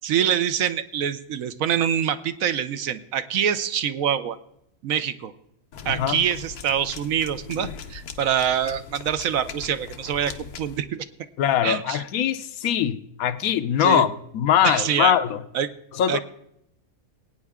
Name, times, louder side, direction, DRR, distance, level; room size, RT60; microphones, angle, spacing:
voice 1, 0.0-4.4 4.8-5.3 5.8-11.1 11.6-12.0 13.8-14.0 14.6-15.2 15.5-15.7 16.1-16.2, right 9 dB, 70° right, 12 dB, 1.1 m, -25 dB
sound 1, 5.7-10.8, left 6 dB, 90° left, 1.4 m, -39 dB
voice 2, 5.9-6.2 11.4-15.4 15.9-16.2, left 9 dB, 75° left, 12 dB, 1.1 m, -22 dB
20.5 x 9.1 x 3.6 m, 0.77 s
omnidirectional pair, 1.6 m